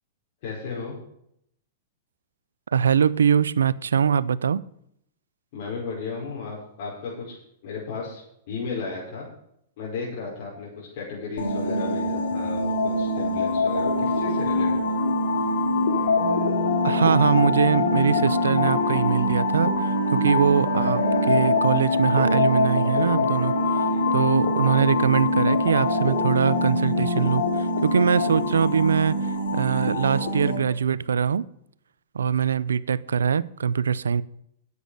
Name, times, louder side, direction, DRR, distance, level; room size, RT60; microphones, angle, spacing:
voice 1, 0.4-0.9 5.5-7.4 7.6-8.2 8.5-9.3 9.8-15.0 20.2-20.3 23.9-24.0, left 4 dB, 55° left, -5 dB, 5.1 m, -34 dB
voice 2, 2.7-4.6 16.8-29.2 29.5-31.4 32.1-34.2, right 7 dB, 85° right, 20 dB, 0.5 m, -22 dB
sound 1, 11.4-30.6, left 2 dB, 80° left, 2.8 m, -23 dB
10.0 x 8.4 x 6.3 m, 0.73 s
hypercardioid pair, 115°, 0 cm